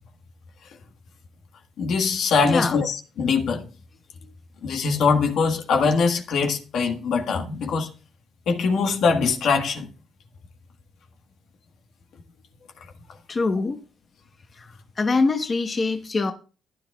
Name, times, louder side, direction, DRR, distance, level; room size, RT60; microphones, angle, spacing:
voice 1, 1.8-3.7 4.6-7.9 8.5-9.9, left 5 dB, 70° left, 1.5 m, -22 dB
voice 2, 2.4-2.8 13.3-13.8 14.6-16.3, left 3 dB, 35° left, 1.0 m, -24 dB
14.5 x 9.9 x 2.3 m
cardioid pair, 90°, 0 cm